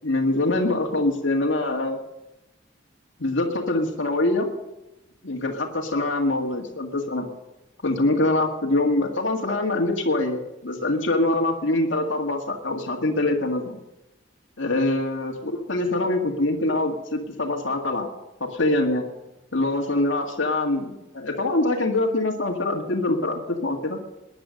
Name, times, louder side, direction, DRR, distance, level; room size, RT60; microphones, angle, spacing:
voice 1, 0.0-2.0 3.2-4.5 5.2-7.2 7.8-13.8 14.6-18.1 18.4-19.0 19.5-24.0, left 2 dB, 80° left, 1 dB, 1.9 m, -24 dB
20.0 x 10.0 x 6.4 m, 0.96 s
head